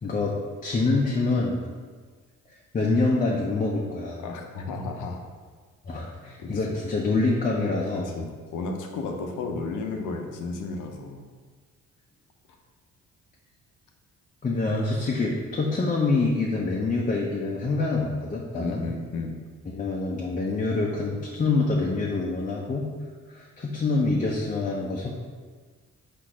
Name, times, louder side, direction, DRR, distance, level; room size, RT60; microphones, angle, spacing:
voice 1, 0.0-0.3 0.6-1.6 2.7-4.2 5.9-8.1 14.4-18.8 19.7-22.9 23.3-25.1, left 3 dB, 25° left, -3 dB, 0.6 m, -26 dB
voice 2, 4.2-5.2 6.2-6.8 8.0-11.2 18.5-19.4, left 3 dB, 85° left, 3 dB, 0.7 m, -33 dB
4.2 x 2.5 x 4.8 m, 1.5 s
cardioid pair, 90°, 30 cm